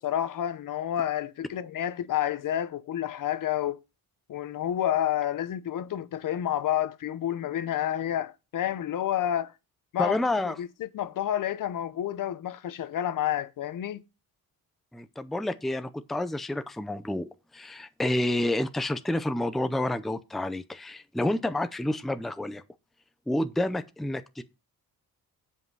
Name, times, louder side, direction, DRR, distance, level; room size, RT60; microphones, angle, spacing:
voice 1, 0.0-3.8 4.3-9.5 9.9-10.2 10.4-14.0, left 11 dB, 60° left, 0.8 m, -29 dB
voice 2, 10.0-10.6 14.9-22.6 23.3-24.4, left 1 dB, ahead, 0.5 m, -29 dB
7.8 x 5.4 x 6.1 m
cardioid pair, 130°, 36 cm